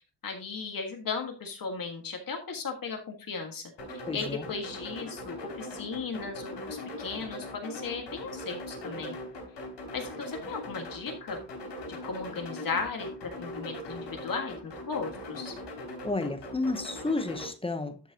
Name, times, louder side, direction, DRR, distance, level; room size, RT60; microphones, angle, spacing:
voice 1, 0.2-3.7 4.1-9.2 9.9-11.4 11.9-15.5, left 5 dB, 50° left, 1.7 m, -36 dB
sound 1, 3.8-17.5, left 1 dB, 75° left, 4.0 m, -40 dB
voice 2, 4.1-4.4 16.0-18.0, left 2 dB, 15° left, 0.8 m, -31 dB
12.5 x 6.1 x 2.8 m
wide cardioid pair, 170°, 43 cm